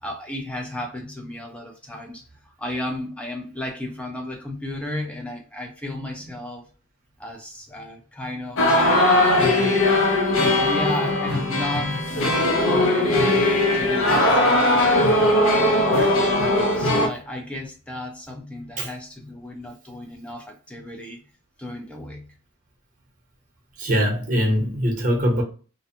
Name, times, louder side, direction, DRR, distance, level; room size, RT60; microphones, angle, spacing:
voice 1, 0.0-6.7 7.2-8.6 9.3-9.9 10.4-13.4 13.7-16.3 16.8-21.2 21.6-22.3, left 1 dB, 5° left, 0.4 m, -34 dB
sound 1, 8.6-17.1, left 1 dB, 65° left, 0.5 m, -19 dB
voice 2, 23.8-25.4, equal, 35° right, 0.8 m, -22 dB
2.5 x 2.1 x 2.7 m
head